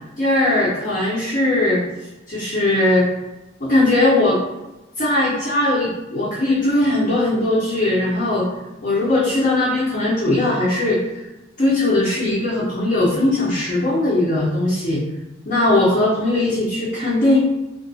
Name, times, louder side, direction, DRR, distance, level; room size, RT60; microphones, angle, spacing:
voice 1, 0.2-1.8 2.3-3.1 3.6-4.4 5.0-8.5 8.8-11.0 11.6-15.0 15.5-17.4, left 2 dB, 45° left, -8 dB, 0.6 m, -19 dB
2.3 x 2.3 x 2.6 m, 1.0 s
head